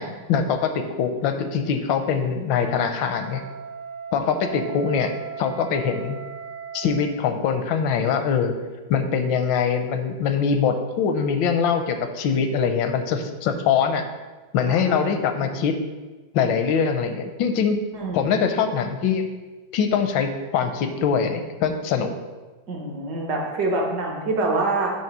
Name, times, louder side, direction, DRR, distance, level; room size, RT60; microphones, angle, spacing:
voice 1, 0.0-3.4 4.1-5.1 5.4-6.2 6.7-8.5 8.9-14.0 14.5-15.8 16.3-17.8 18.1-19.3 19.7-22.1, left 6 dB, 85° left, 7 dB, 1.4 m, -23 dB
voice 2, 1.1-1.4 14.7-15.6 17.9-18.3 22.7-24.9, right 2 dB, 60° right, 0 dB, 1.6 m, -27 dB
Wind instrument woodwind instrument, 2.4-7.1, right 6 dB, 90° right, 2.5 m, -37 dB
7.2 x 3.1 x 6.0 m, 1.3 s
omnidirectional pair, 2.0 m